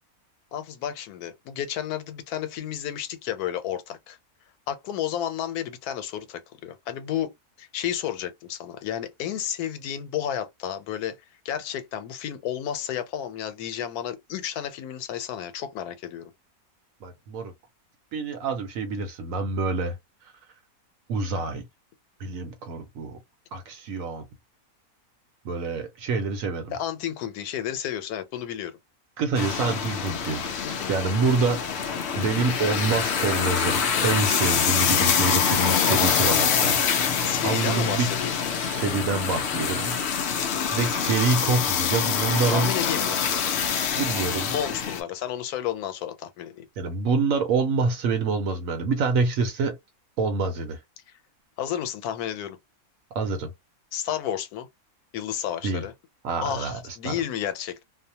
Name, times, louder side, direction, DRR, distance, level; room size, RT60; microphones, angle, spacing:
voice 1, 0.5-4.2 4.7-7.3 7.6-11.2 11.4-16.3 26.7-28.8 30.6-30.9 37.2-38.4 42.5-43.2 44.5-46.7 51.6-52.6 53.9-54.7 55.1-55.9 56.4-57.8, left 10 dB, 90° left, 1.1 m, -31 dB
voice 2, 17.0-17.5 18.1-20.0 21.1-21.6 22.2-23.2 23.5-24.2 25.4-26.7 29.2-30.4 30.9-31.9 32.2-36.8 37.0-38.1 38.6-40.0 40.3-42.7 44.0-44.5 46.8-49.8 50.2-50.8 53.1-53.5 55.6-55.9 56.2-57.2, right 4 dB, 70° right, 1.0 m, -27 dB
sound 1, 29.3-45.0, left 7 dB, 65° left, 0.6 m, -25 dB
2.6 x 2.1 x 2.7 m
omnidirectional pair, 1.6 m